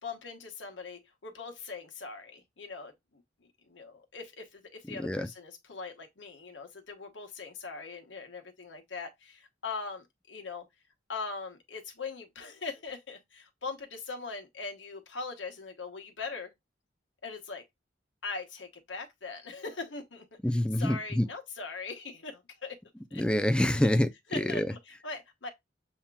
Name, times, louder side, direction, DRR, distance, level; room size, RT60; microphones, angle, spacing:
voice 1, 0.0-3.2 3.6-10.7 11.1-16.5 17.2-17.6 18.2-20.4 20.8-22.8 23.1-23.2 23.8-23.9 24.3-25.5, left 4 dB, 85° left, 1.2 m, -41 dB
voice 2, 4.9-5.3 20.4-21.3 23.1-24.7, left 1 dB, 5° left, 0.4 m, -27 dB
7.1 x 2.9 x 2.3 m
head